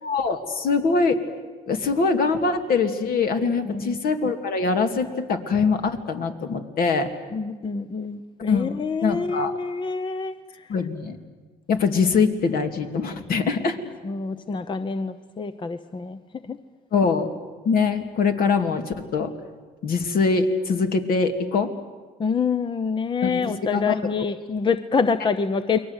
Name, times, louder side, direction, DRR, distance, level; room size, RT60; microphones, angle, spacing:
voice 1, 0.0-1.2 1.7-7.1 8.5-9.5 10.7-11.2 11.7-13.8 16.9-17.3 17.6-19.3 19.8-21.7 23.2-24.1, left 4 dB, 60° left, 6 dB, 2.5 m, -23 dB
voice 2, 7.3-10.3 14.0-16.2 16.5-16.6 22.2-25.8, left 5 dB, 30° left, 11 dB, 0.9 m, -26 dB
29.5 x 22.5 x 8.2 m, 1.4 s
cardioid pair, 110°, 17 cm